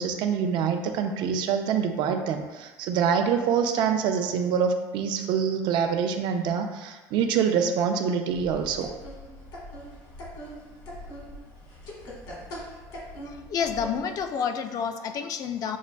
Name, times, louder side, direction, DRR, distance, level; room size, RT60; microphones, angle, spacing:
voice 1, 0.0-8.9, right 7 dB, 65° right, 5 dB, 0.5 m, -25 dB
sound 1, 8.3-14.3, equal, 75° left, 1.4 m, -41 dB
voice 2, 13.2-15.8, left 7 dB, 45° left, 7 dB, 0.4 m, -29 dB
7.1 x 2.5 x 2.2 m, 1.2 s
cardioid pair, 135°, 9 cm